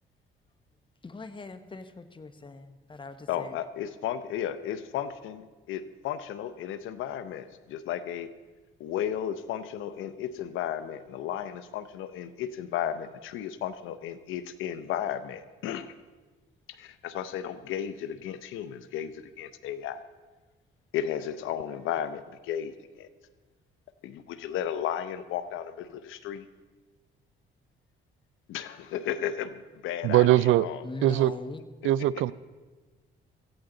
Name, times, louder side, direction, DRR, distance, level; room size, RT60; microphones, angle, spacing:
voice 1, 1.0-3.6 30.8-31.6, left 3 dB, 25° left, 10 dB, 1.0 m, -41 dB
voice 2, 3.3-8.3 8.8-15.9 16.7-20.0 20.9-23.1 24.0-26.5 28.5-30.8, left 10 dB, 90° left, 13 dB, 0.8 m, -34 dB
voice 3, 30.0-30.7 31.0-31.3 31.8-32.3, right 14 dB, 80° right, 18 dB, 0.4 m, -21 dB
17.0 x 15.0 x 3.9 m, 1.3 s
cardioid pair, 90°, 20 cm